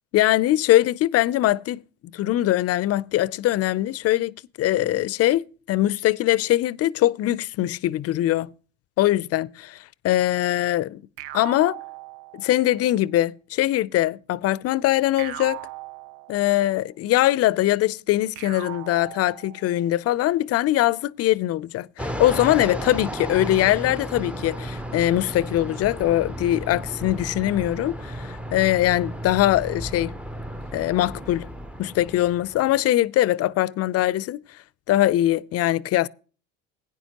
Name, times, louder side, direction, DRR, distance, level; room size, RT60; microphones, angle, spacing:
voice 1, 0.1-1.8 2.1-8.5 9.0-9.8 10.0-11.0 11.3-11.8 12.3-15.6 16.3-30.1 30.7-31.5 31.8-34.4 34.9-36.1, left 14 dB, 50° left, 0.5 m, -22 dB
sound 1, 11.2-12.8 15.2-16.8 18.3-19.9, right 17 dB, 80° right, 0.5 m, -39 dB
Fixed-wing aircraft airplane, 22.0-32.8, equal, 5° right, 0.6 m, -34 dB
16.5 x 9.7 x 2.9 m
supercardioid pair, 95°, 32 cm